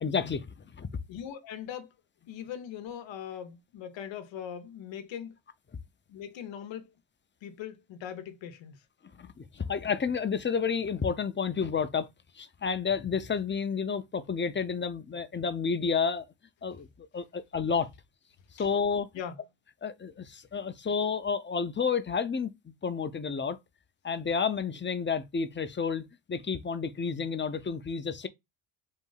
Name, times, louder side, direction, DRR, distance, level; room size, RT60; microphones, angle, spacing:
voice 1, 0.0-0.9 9.2-12.1 12.3-16.2 16.6-17.9 18.5-19.1 19.8-23.6 24.0-28.3, left 6 dB, 25° left, 0.7 m, -30 dB
voice 2, 1.1-1.9 2.3-5.4 6.1-6.9 7.4-8.8 18.6-18.7 19.1-19.4, left 9 dB, 85° left, 0.9 m, -40 dB
4.2 x 2.6 x 3.8 m
cardioid pair, 95°, 44 cm